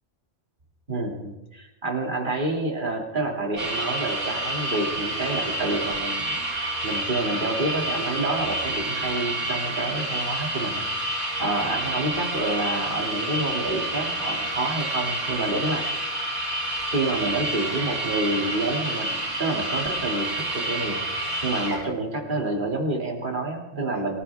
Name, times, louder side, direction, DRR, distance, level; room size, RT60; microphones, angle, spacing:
voice 1, 0.9-10.8 11.4-16.1 16.9-21.0 21.4-24.2, right 2 dB, 40° right, 0 dB, 2.9 m, -28 dB
sound 1, 3.6-21.8, right 1 dB, 70° right, 4.5 m, -29 dB
26.0 x 15.5 x 3.6 m, 1.0 s
omnidirectional pair, 1.3 m